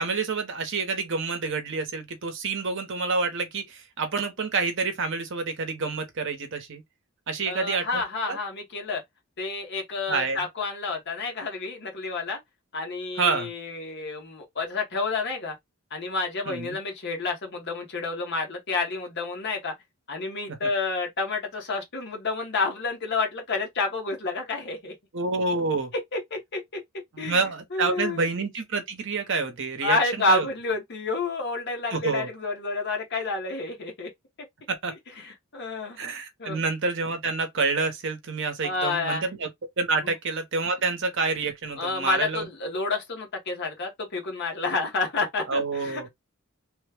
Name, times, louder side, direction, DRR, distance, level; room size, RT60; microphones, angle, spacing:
voice 1, 0.0-6.8 7.3-8.4 10.1-10.4 13.2-13.5 16.5-16.8 25.1-25.9 27.1-30.0 30.3-30.5 31.9-32.3 34.7-34.9 36.0-39.5 39.8-42.5 45.5-46.1, right 4 dB, 60° right, 0.9 m, -28 dB
voice 2, 7.4-9.0 9.4-12.4 12.7-15.6 15.9-19.7 20.1-24.9 25.9-27.4 27.7-28.3 29.8-34.1 34.9-36.0 36.4-36.6 38.6-39.3 40.0-40.1 41.8-46.1, left 3 dB, 55° left, 1.2 m, -29 dB
3.2 x 2.2 x 3.3 m
head